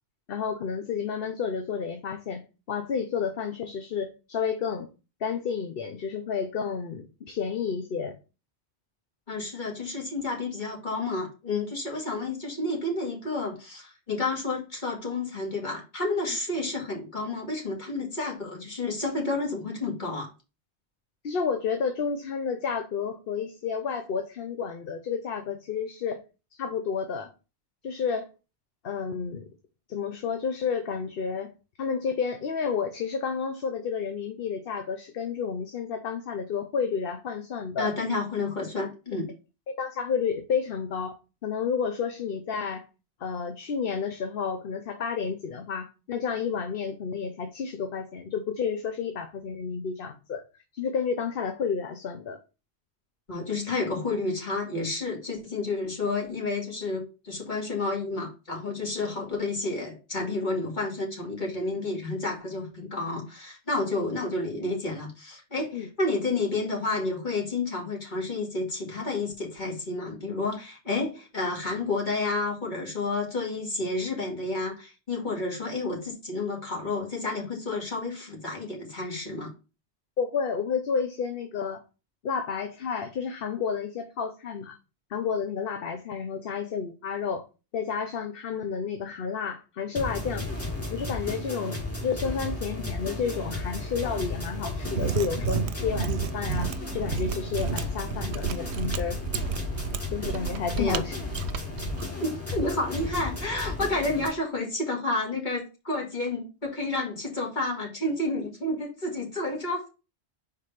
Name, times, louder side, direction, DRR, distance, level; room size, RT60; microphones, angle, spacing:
voice 1, 0.3-2.4 2.7-4.9 5.2-8.1 21.2-26.2 26.5-27.3 27.8-28.3 28.8-29.4 29.9-31.5 31.8-37.9 39.8-42.8 43.2-50.4 50.7-52.4 65.7-65.9 80.2-81.8 82.2-84.8 85.1-87.5 87.7-90.5 90.9-99.2 100.1-101.1 101.7-101.9, left 6 dB, 60° left, 0.9 m, -31 dB
voice 2, 9.3-20.3 37.8-39.3 53.3-79.5 100.8-101.0 102.2-109.9, left 2 dB, 45° left, 2.3 m, -30 dB
sound 1, 89.9-104.3, left 2 dB, 10° left, 2.1 m, -34 dB
Mechanisms, 94.8-102.0, right 9 dB, 75° right, 0.9 m, -32 dB
4.9 x 3.8 x 5.6 m
omnidirectional pair, 1.2 m